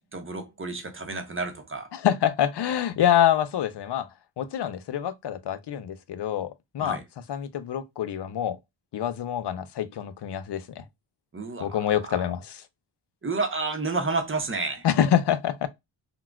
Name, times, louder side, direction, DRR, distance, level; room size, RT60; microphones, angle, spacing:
voice 1, 0.0-1.9 6.8-7.0 11.3-12.3 13.2-14.9, right 3 dB, 25° right, 0.8 m, -31 dB
voice 2, 1.9-4.1 4.4-7.0 7.3-8.6 8.9-10.8 11.6-12.4 14.8-15.7, left 10 dB, 60° left, 0.6 m, -26 dB
3.8 x 2.3 x 2.2 m
wide cardioid pair, 80°, 47 cm